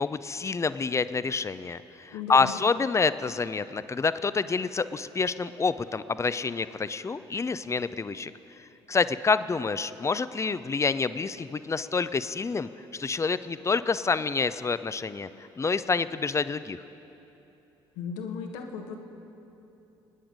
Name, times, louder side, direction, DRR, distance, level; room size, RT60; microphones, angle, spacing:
voice 1, 0.0-8.3 8.6-16.8, left 4 dB, 20° left, 14 dB, 0.5 m, -28 dB
voice 2, 2.1-2.6 17.9-19.0, left 6 dB, 70° left, 4 dB, 1.4 m, -36 dB
22.5 x 10.0 x 5.1 m, 2.9 s
figure-of-eight pair, 50°, 14 cm